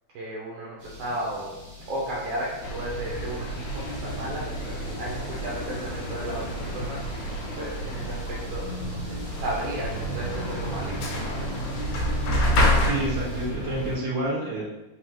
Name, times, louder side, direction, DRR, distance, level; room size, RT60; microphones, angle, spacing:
voice 1, 0.1-1.5 1.9-8.6 9.0-11.5, right 1 dB, 70° right, -5 dB, 1.5 m, -34 dB
sound 1, 0.8-13.5, left 3 dB, 85° right, 0.7 m, -46 dB
sound 2, 2.6-14.0, equal, 75° left, 2.1 m, -29 dB
sound 3, 3.0-12.5, equal, 50° left, 1.0 m, -45 dB
voice 2, 12.8-14.6, right 1 dB, 45° right, -7 dB, 2.1 m, -29 dB
4.6 x 3.5 x 3.0 m, 1.0 s
omnidirectional pair, 3.4 m